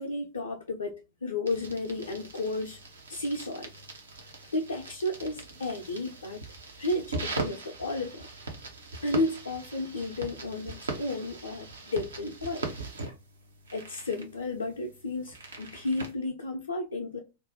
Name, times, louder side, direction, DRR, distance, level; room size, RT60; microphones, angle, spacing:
voice 1, 0.0-2.8 3.1-3.7 4.5-6.4 6.8-8.3 9.0-12.7 13.7-17.2, left 2 dB, 75° left, 0.4 m, -33 dB
sound 1, 1.5-16.1, right 3 dB, 75° right, 0.6 m, -41 dB
2.4 x 2.1 x 2.8 m
figure-of-eight pair, 90°, 0 cm